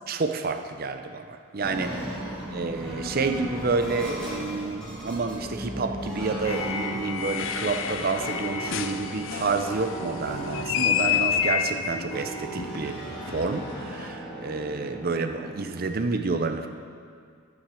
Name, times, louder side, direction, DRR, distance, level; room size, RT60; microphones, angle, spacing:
voice 1, 0.1-2.1 2.5-13.0 13.3-16.7, right 4 dB, 45° right, 7 dB, 0.6 m, -29 dB
sound 1, 1.6-15.8, right 1 dB, 5° left, 2.4 m, -37 dB
sound 2, 6.4-14.2, left 8 dB, 60° left, 0.5 m, -30 dB
10.0 x 6.3 x 6.3 m, 2.2 s
head